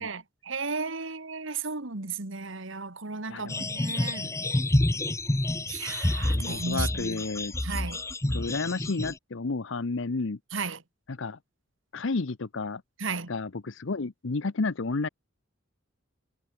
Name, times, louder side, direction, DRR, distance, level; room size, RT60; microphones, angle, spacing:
voice 1, 0.0-4.3 5.7-7.2 7.6-8.0 10.5-10.8 13.0-13.3, right 4 dB, 70° right, 2.0 m, -34 dB
voice 2, 3.3-4.3 6.2-7.5 8.3-10.4 11.1-11.4 11.9-12.8 13.3-15.1, left 3 dB, 70° left, 0.8 m, -32 dB
sound 1, 3.5-9.1, left 1 dB, 15° left, 0.8 m, -28 dB
head